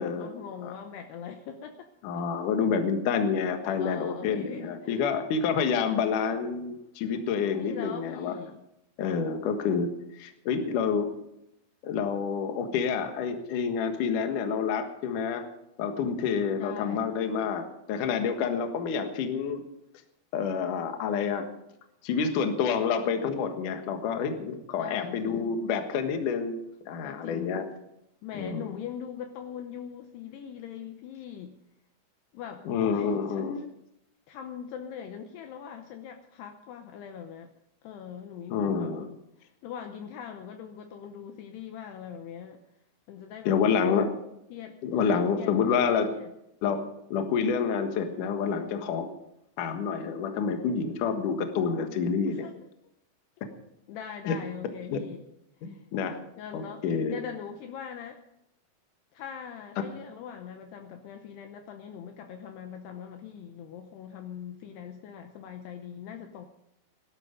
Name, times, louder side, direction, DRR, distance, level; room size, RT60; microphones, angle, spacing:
voice 1, 0.0-1.9 3.8-5.0 7.6-8.6 16.6-17.1 24.8-25.6 27.0-27.7 28.2-31.5 32.3-33.7 34.3-37.5 37.8-42.6 43.1-43.6 44.5-45.5 45.8-46.3 47.9-48.3 52.3-52.5 53.9-55.2 55.6-55.8 56.4-56.8 57.1-58.2 59.1-66.5, left 8 dB, 75° left, 6 dB, 2.7 m, -41 dB
voice 2, 2.0-8.4 9.0-11.1 11.8-15.5 15.8-19.6 20.3-21.5 22.0-26.6 26.9-27.7 28.3-28.7 32.7-33.5 38.5-39.1 43.5-44.1 44.8-46.1 46.6-46.9 47.1-49.1 49.6-52.4 54.3-54.4 54.9-55.0 55.6-56.2 56.5-57.1, left 6 dB, 60° left, 6 dB, 2.4 m, -28 dB
17.0 x 12.5 x 5.2 m, 0.82 s
omnidirectional pair, 5.3 m